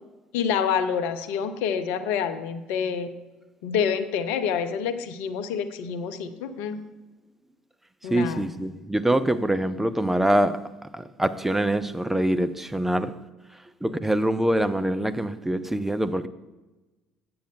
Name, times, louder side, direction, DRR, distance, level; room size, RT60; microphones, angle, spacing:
voice 1, 0.3-3.1 3.6-6.8 8.0-8.5, left 7 dB, 65° left, 0.7 m, -27 dB
voice 2, 8.0-10.6 10.9-13.1 13.8-16.3, right 1 dB, 10° right, 0.5 m, -24 dB
8.3 x 7.7 x 3.8 m
figure-of-eight pair, 55°, 3 cm